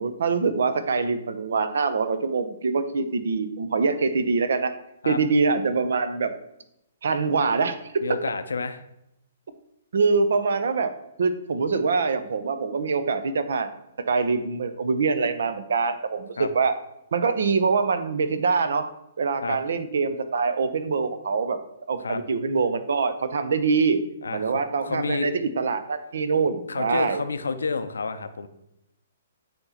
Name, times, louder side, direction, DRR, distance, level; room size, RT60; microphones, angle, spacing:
voice 1, 0.0-4.7 5.0-6.3 7.0-8.2 9.9-13.7 14.1-16.8 17.1-18.9 19.2-21.6 21.9-24.0 24.3-27.2, right 4 dB, 65° right, 11 dB, 0.6 m, -24 dB
voice 2, 8.0-8.8 16.4-16.5 19.4-19.6 22.0-22.2 24.2-25.3 26.7-28.5, left 4 dB, 75° left, 10 dB, 0.5 m, -30 dB
8.6 x 2.9 x 4.1 m, 0.83 s
figure-of-eight pair, 120°, 0 cm